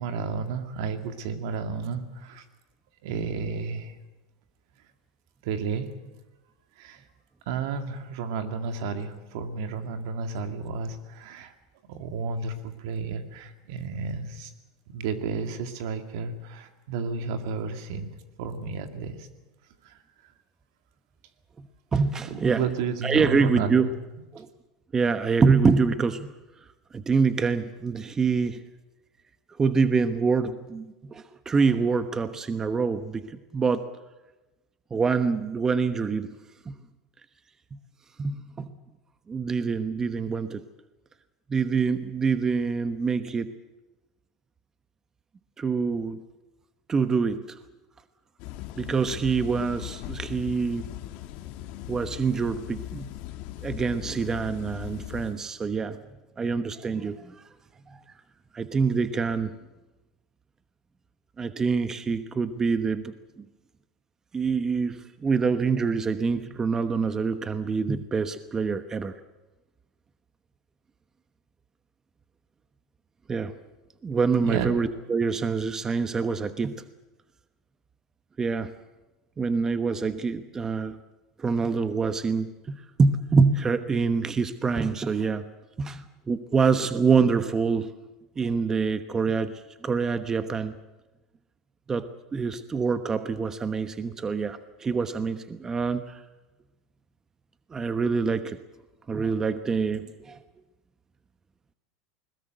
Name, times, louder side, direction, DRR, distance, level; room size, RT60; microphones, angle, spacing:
voice 1, 0.0-2.4 3.0-4.0 5.4-5.9 6.8-7.0 7.5-11.5 11.9-14.5 14.9-18.1 18.4-19.3 19.8-20.0 22.2-23.9 74.3-74.7, right 5 dB, 70° right, 7 dB, 2.3 m, -32 dB
voice 2, 21.9-22.6 23.0-23.9 24.3-24.5 24.9-26.3 26.9-28.6 29.6-33.9 34.9-36.3 36.7-36.8 37.7-37.8 38.2-38.7 39.3-40.6 41.5-43.5 45.6-46.2 46.9-47.6 48.8-50.9 51.9-53.1 53.6-56.0 56.4-57.4 57.9-58.0 58.5-59.5 61.4-63.4 64.3-69.1 73.3-73.5 74.0-76.7 78.4-78.7 79.4-81.0 81.4-85.5 85.8-87.9 88.4-90.7 91.9-96.2 97.7-98.6 99.1-100.4, right 5 dB, 20° right, 10 dB, 1.1 m, -25 dB
sound 1, 48.4-55.4, left 14 dB, 55° left, 1.9 m, -39 dB
21.0 x 20.0 x 7.9 m, 1.1 s
hypercardioid pair, 100°, 2 cm